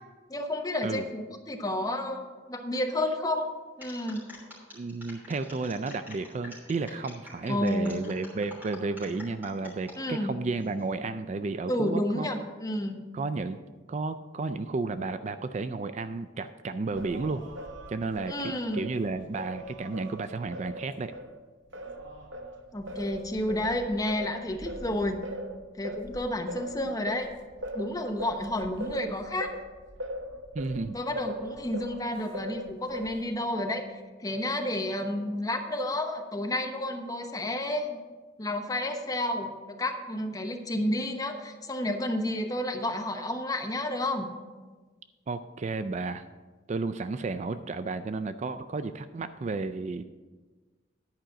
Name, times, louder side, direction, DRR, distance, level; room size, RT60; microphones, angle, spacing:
voice 1, 0.3-3.5 3.8-4.2 7.5-8.0 10.0-10.3 11.7-13.1 18.3-18.8 22.7-25.2 25.7-27.3 27.7-29.5 30.9-33.9 34.2-38.0 38.4-44.3, left 1 dB, 20° left, 4 dB, 0.9 m, -31 dB
sound 1, 3.8-10.0 10.4-10.9, left 1 dB, 10° right, 3.2 m, -47 dB
voice 2, 4.7-12.3 13.1-13.6 13.9-17.4 17.9-21.1 30.5-31.0 45.3-46.2 46.7-50.0, right 3 dB, 35° right, 11 dB, 0.3 m, -32 dB
Singing, 17.0-21.3 21.7-32.0 32.3-33.4, equal, 80° right, 1.1 m, -40 dB
10.5 x 5.0 x 7.5 m, 1.3 s
head